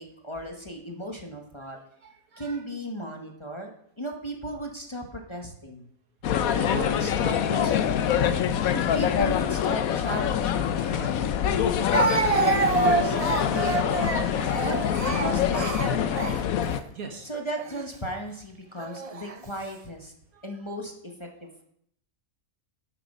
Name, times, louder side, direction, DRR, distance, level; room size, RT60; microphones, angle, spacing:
voice 1, 0.0-1.8 2.4-5.9 6.6-8.2 8.7-11.4 12.3-14.8 15.1-16.3 17.2-20.1 20.4-21.6, equal, 20° left, 2 dB, 1.2 m, -36 dB
voice 2, 2.0-2.6 6.6-6.8 8.4-8.6 16.9-17.3 20.3-20.4, right 4 dB, 80° right, 3 dB, 2.0 m, -41 dB
sound 1, 6.2-16.8, left 9 dB, 80° left, 1.1 m, -25 dB
Speech, 10.8-10.9 11.9-16.8 17.6-17.8 18.8-19.4, right 4 dB, 40° right, 0.5 m, -27 dB
9.9 x 8.0 x 5.4 m, 0.71 s
omnidirectional pair, 1.5 m